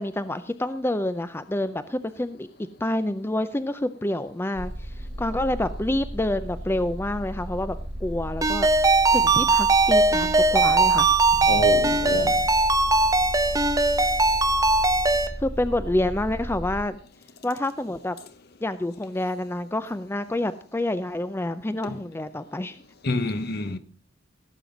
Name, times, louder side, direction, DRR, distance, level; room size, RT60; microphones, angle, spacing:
voice 1, 0.0-2.5 2.8-7.8 8.0-8.7 9.1-11.1 15.4-17.0 17.4-18.2 18.6-22.8, left 1 dB, 10° left, 0.5 m, -28 dB
sound 1, 4.5-16.8, equal, 65° right, 2.1 m, -35 dB
Ringtone, 8.4-15.3, right 3 dB, 20° right, 0.9 m, -20 dB
voice 2, 11.4-12.4 21.8-22.0 23.0-23.8, left 2 dB, 55° left, 0.9 m, -27 dB
17.0 x 7.6 x 5.1 m
head